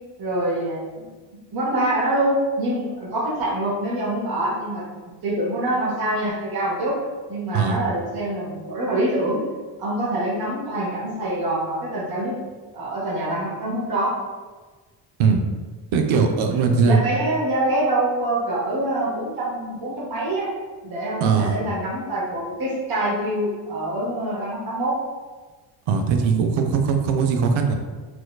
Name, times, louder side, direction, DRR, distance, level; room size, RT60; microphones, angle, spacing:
voice 1, 0.2-1.1 1.5-4.8 5.2-6.9 7.3-9.4 9.8-12.4 12.7-14.1 16.5-20.5 20.8-24.9, right 1 dB, 45° right, -9 dB, 1.2 m, -25 dB
voice 2, 15.9-17.0 21.2-21.6 25.9-27.7, right 5 dB, 70° right, 4 dB, 0.6 m, -20 dB
4.3 x 2.3 x 2.3 m, 1.3 s
supercardioid pair, 75°, 50 cm